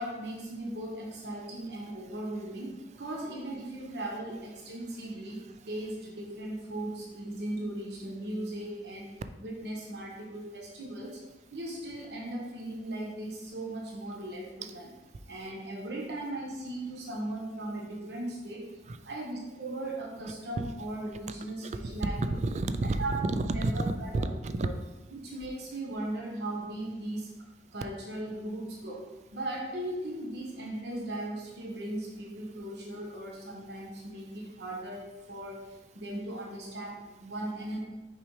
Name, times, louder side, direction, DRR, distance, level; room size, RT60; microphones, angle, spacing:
voice 1, 0.0-9.1 9.4-11.2 11.5-14.9 15.3-18.7 19.0-22.2 23.0-23.1 23.5-24.3 24.6-24.7 25.1-27.3 27.7-37.8, right 1 dB, 65° right, -2 dB, 1.1 m, -38 dB
voice 2, 21.6-23.8 24.1-24.7, right 2 dB, 40° right, 10 dB, 0.3 m, -31 dB
5.9 x 5.3 x 3.2 m, 1.1 s
head